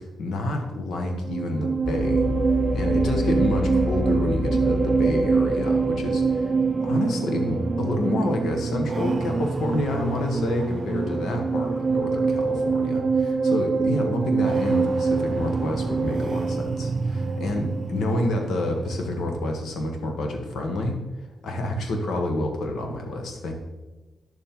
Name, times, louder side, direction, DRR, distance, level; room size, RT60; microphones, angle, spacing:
voice 1, 0.0-2.3 2.7-6.5 6.8-21.0 21.4-23.5, left 1 dB, 80° left, 3 dB, 1.5 m, -28 dB
sound 1, 1.0-19.5, right 5 dB, 40° right, 0.4 m, -25 dB
sound 2, 1.8-11.8 12.3-12.4 13.0-13.4, equal, 10° right, 2.6 m, -29 dB
10.0 x 7.2 x 3.8 m, 1.1 s
cardioid pair, 90°, 0 cm